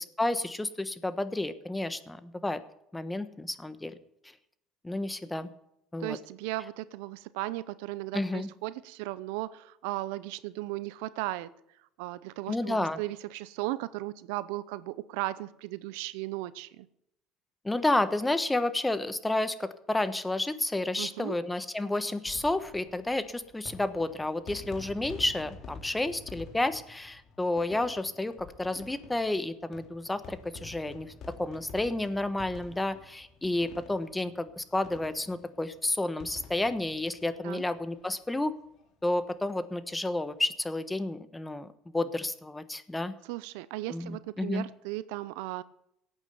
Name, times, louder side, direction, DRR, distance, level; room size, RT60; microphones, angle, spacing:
voice 1, 0.0-2.6 2.9-4.0 4.8-5.5 5.9-6.2 8.1-8.5 12.5-13.0 17.6-31.1 31.4-38.5 39.0-41.7 41.9-43.1 43.9-44.7, left 2 dB, 10° left, 12 dB, 1.3 m, -31 dB
voice 2, 6.0-11.5 12.0-16.9 21.0-21.4 37.4-37.6 43.2-45.6, right 17 dB, 85° right, 17 dB, 0.7 m, -36 dB
sound 1, 22.1-38.2 38.5-38.6 38.8-38.9 40.1-40.4, left 4 dB, 55° left, 2.8 m, -49 dB
17.0 x 9.1 x 6.9 m, 0.78 s
supercardioid pair, 95°, 0 cm